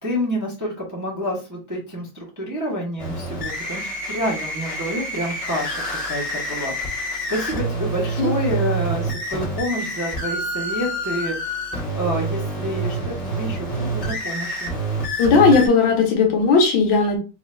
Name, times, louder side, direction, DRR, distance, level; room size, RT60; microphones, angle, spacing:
voice 1, 0.0-11.6 11.9-14.7, equal, 20° right, -4 dB, 0.4 m, -28 dB
sound 1, 3.0-15.7, right 2 dB, 40° left, 1.4 m, -27 dB
voice 2, 15.2-17.2, left 4 dB, 70° left, 2 dB, 1.5 m, -16 dB
4.8 x 2.6 x 2.2 m, 0.31 s
omnidirectional pair, 2.2 m